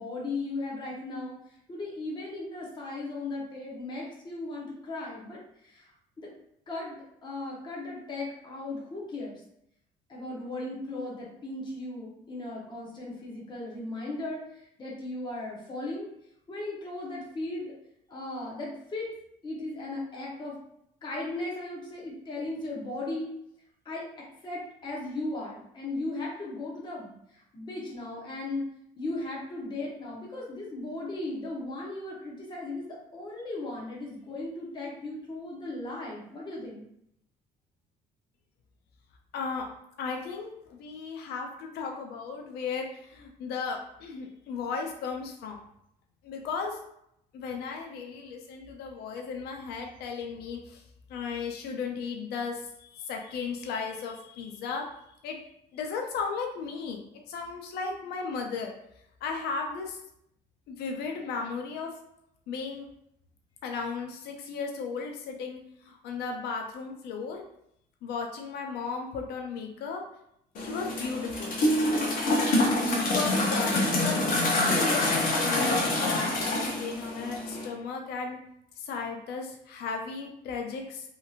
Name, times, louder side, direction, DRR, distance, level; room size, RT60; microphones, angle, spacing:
voice 1, 0.0-1.3 1.7-6.3 6.7-9.4 10.1-16.1 16.5-17.7 18.1-19.1 19.4-20.6 21.0-23.3 23.8-28.7 29.0-36.9, left 2 dB, 25° left, -4 dB, 0.8 m, -37 dB
voice 2, 39.3-39.7 40.0-45.6 46.2-46.8 47.3-50.8 51.1-55.4 55.7-57.0 57.3-58.7 59.2-60.0 60.7-61.9 62.5-62.9 63.6-67.4 68.0-70.0 70.6-71.6 72.2-78.4 78.8-81.1, left 5 dB, 70° left, 2 dB, 0.5 m, -35 dB
sound 1, 70.5-77.7, left 1 dB, 55° left, 0.8 m, -26 dB
2.9 x 2.6 x 2.4 m, 0.75 s
cardioid pair, 110°, 17 cm